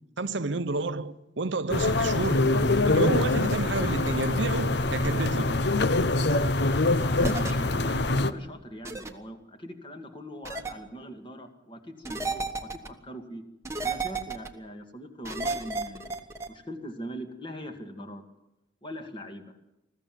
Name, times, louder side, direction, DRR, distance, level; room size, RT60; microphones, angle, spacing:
voice 1, 0.2-2.5 2.9-5.6, right 3 dB, 70° right, 0.8 m, -30 dB
sound 1, 1.7-8.3, left 2 dB, 60° left, 0.9 m, -24 dB
voice 2, 7.1-13.4 13.8-16.1 16.5-18.2 18.8-19.6, equal, 25° left, 2.2 m, -41 dB
sound 2, 7.2-7.5 8.8-9.1 10.4-10.7 12.0-12.9 13.6-14.5 15.2-16.5, right 3 dB, 15° right, 1.3 m, -32 dB
21.0 x 15.0 x 9.4 m
head